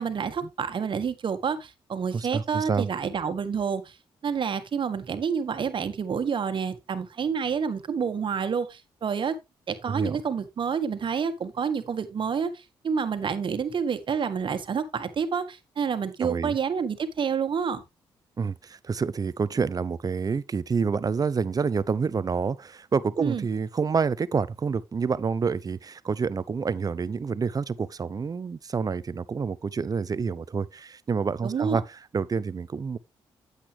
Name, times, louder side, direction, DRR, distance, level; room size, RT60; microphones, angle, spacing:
voice 1, 0.0-3.8 4.2-9.3 9.7-12.5 12.8-17.8 23.2-23.5 31.4-31.8, right 6 dB, 55° right, 1.5 m, -28 dB
voice 2, 2.1-2.9 9.9-10.2 16.2-16.6 18.4-33.0, right 5 dB, 35° right, 0.6 m, -28 dB
8.7 x 8.2 x 3.3 m
supercardioid pair, 60°, 10 cm